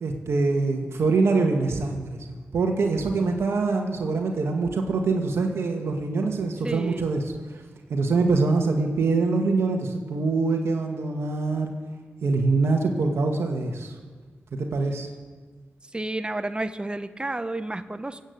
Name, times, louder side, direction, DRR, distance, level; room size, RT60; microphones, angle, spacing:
voice 1, 0.0-7.2 7.5-7.6 7.9-11.7 12.2-14.0 14.5-15.1, right 3 dB, 80° right, 3 dB, 1.6 m, -24 dB
voice 2, 6.6-7.1 15.9-18.2, right 2 dB, 20° right, 10 dB, 1.0 m, -31 dB
19.0 x 8.4 x 8.0 m, 1.5 s
cardioid pair, 40°, 4 cm